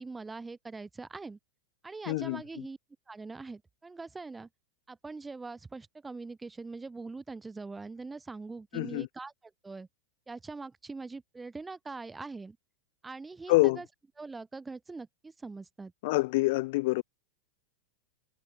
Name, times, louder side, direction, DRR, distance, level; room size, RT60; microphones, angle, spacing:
voice 1, 0.0-1.4 1.8-2.8 3.1-4.5 4.9-9.3 9.6-9.9 10.3-12.6 13.0-13.9 14.2-15.9, right 3 dB, 10° right, 2.3 m, -42 dB
voice 2, 2.1-2.4 8.7-9.1 13.5-13.8 16.0-17.0, left 22 dB, 50° left, 1.7 m, -26 dB
figure-of-eight pair, 90°, 0 cm